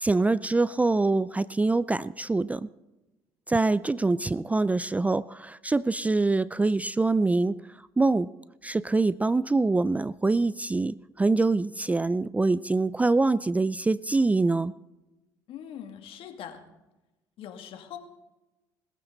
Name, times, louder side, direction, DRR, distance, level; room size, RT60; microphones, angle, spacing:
voice 1, 0.0-2.7 3.5-7.6 8.0-8.3 8.6-14.7, right 3 dB, 15° right, 19 dB, 0.4 m, -24 dB
voice 2, 15.5-16.6 17.4-18.0, left 9 dB, 65° left, 5 dB, 2.4 m, -41 dB
21.0 x 14.5 x 4.0 m, 1.0 s
supercardioid pair, 70°, 10 cm